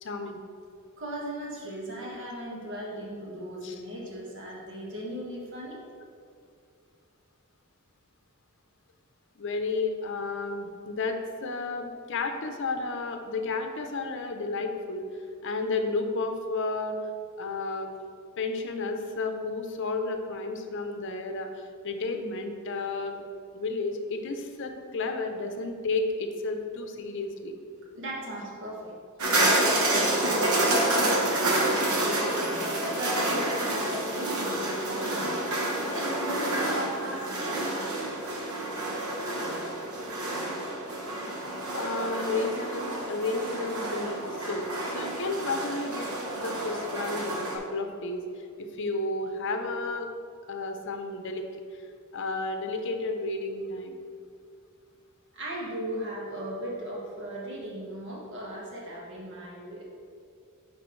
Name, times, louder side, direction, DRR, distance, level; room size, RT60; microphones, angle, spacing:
voice 1, 0.0-0.4 3.6-3.7 9.4-15.1 15.4-17.0 17.4-17.9 18.4-23.2 23.5-27.5 41.7-48.2 48.6-50.1 50.5-51.4 52.1-54.0, left 3 dB, 60° left, 5 dB, 0.7 m, -32 dB
voice 2, 1.0-5.8 27.9-28.9 29.3-32.2 32.9-35.3 35.9-37.6 40.7-40.8 55.3-59.8, right 1 dB, 55° right, -4 dB, 1.6 m, -37 dB
sound 1, 29.2-47.6, right 1 dB, 75° right, 1.2 m, -29 dB
10.5 x 4.5 x 3.2 m, 2.3 s
head